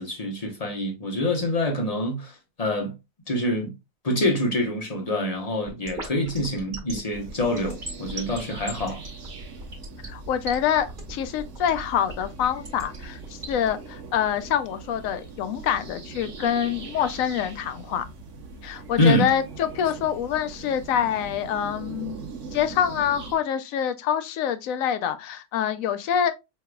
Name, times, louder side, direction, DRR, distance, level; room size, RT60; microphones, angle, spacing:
voice 1, 0.0-2.9 3.3-3.7 4.0-9.0 19.0-19.3, left 1 dB, 30° left, 1.1 m, -25 dB
sound 1, 5.7-13.7, right 2 dB, 40° right, 1.4 m, -37 dB
sound 2, 7.1-23.3, right 4 dB, 65° right, 1.2 m, -41 dB
voice 2, 10.0-18.0 18.6-22.2 22.5-26.3, left 9 dB, 85° left, 1.0 m, -26 dB
4.7 x 3.4 x 2.2 m
omnidirectional pair, 1.4 m